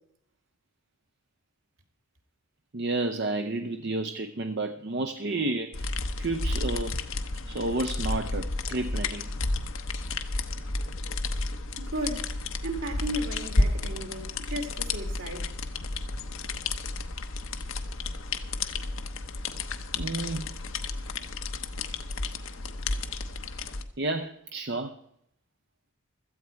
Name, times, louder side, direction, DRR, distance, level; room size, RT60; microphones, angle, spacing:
voice 1, 2.7-7.0 7.5-9.3 19.9-20.5 24.0-25.0, right 2 dB, 50° right, 0.6 m, -31 dB
sound 1, 5.7-23.8, left 2 dB, 65° left, 1.0 m, -32 dB
voice 2, 11.8-12.3 12.6-15.5, right 1 dB, 70° right, 2.4 m, -35 dB
16.5 x 14.0 x 4.5 m
head